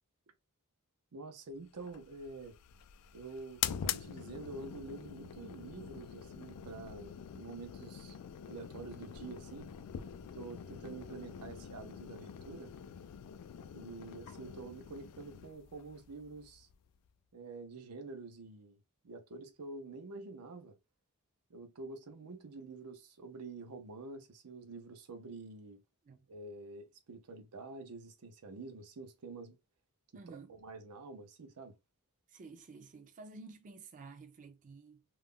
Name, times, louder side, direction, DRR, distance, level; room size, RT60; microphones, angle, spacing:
voice 1, 1.1-2.6 3.1-8.2 8.5-9.7 10.3-12.7 13.7-16.7 17.3-18.8 19.0-20.7 21.5-25.8 26.3-29.6 30.3-31.8, right 3 dB, 85° right, 0.6 m, -47 dB
sound 1, 1.8-17.1, left 9 dB, 85° left, 0.3 m, -45 dB
voice 2, 30.1-30.6 32.3-35.0, right 4 dB, 35° right, 0.4 m, -52 dB
2.3 x 2.0 x 3.5 m
head